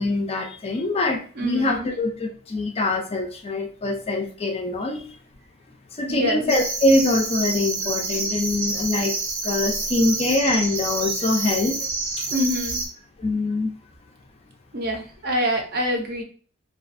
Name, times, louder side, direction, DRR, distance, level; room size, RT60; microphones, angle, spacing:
voice 1, 0.0-5.1 6.0-9.1 9.4-11.8 12.2-12.3 13.2-13.7, left 2 dB, 30° left, 4 dB, 0.3 m, -24 dB
voice 2, 1.3-1.9 6.1-6.5 12.3-12.8 14.7-16.2, equal, 50° right, 2 dB, 0.6 m, -26 dB
sound 1, 6.5-12.9, right 3 dB, 85° right, 0.7 m, -28 dB
2.3 x 2.2 x 2.5 m, 0.43 s
head